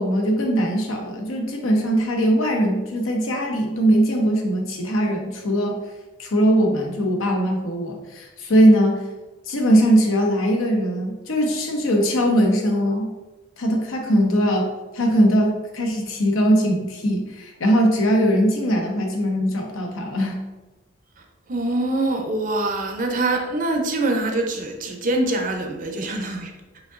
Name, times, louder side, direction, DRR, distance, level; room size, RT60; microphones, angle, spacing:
voice 1, 0.0-5.8 6.2-9.0 9.5-13.1 13.6-14.7 14.9-20.4, equal, 85° left, 2 dB, 0.8 m, -20 dB
voice 2, 21.5-26.5, right 2 dB, 40° right, 3 dB, 0.5 m, -24 dB
5.0 x 3.7 x 2.5 m, 1.1 s
head